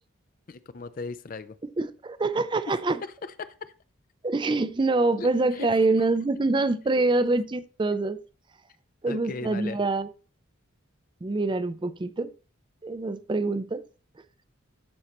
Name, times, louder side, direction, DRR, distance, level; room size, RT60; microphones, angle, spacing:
voice 1, 0.5-1.6 3.2-3.7 5.2-5.3 5.6-5.7 9.1-9.8, left 4 dB, 40° left, 0.4 m, -37 dB
voice 2, 1.6-3.0 4.2-8.2 9.0-10.1 11.2-12.3 12.8-13.8 14.2-14.3, right 3 dB, 25° right, 0.4 m, -25 dB
13.0 x 5.5 x 3.0 m
head